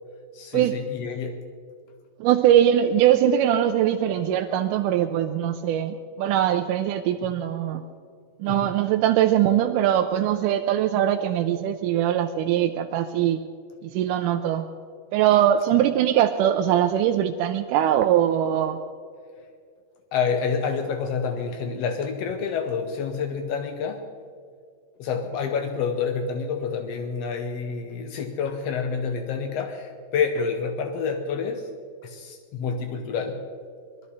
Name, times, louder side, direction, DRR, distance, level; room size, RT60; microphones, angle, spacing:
voice 1, 0.3-1.4 8.4-8.7 20.1-24.0 25.0-31.7 32.0-33.4, left 5 dB, 80° left, 6 dB, 1.4 m, -28 dB
voice 2, 2.2-7.8 8.4-13.4 13.8-14.7 15.1-18.8, right 11 dB, 80° right, 5 dB, 2.0 m, -21 dB
21.5 x 13.5 x 4.2 m, 2.2 s
omnidirectional pair, 4.0 m